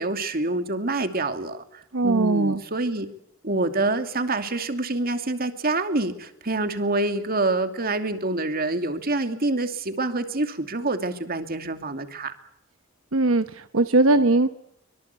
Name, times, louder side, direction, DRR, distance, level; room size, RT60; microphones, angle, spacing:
voice 1, 0.0-3.1 3.4-12.3, right 2 dB, 50° right, 8 dB, 2.6 m, -26 dB
voice 2, 1.9-2.6 13.1-14.5, right 2 dB, 80° right, 10 dB, 1.1 m, -20 dB
25.0 x 24.0 x 8.3 m, 0.76 s
head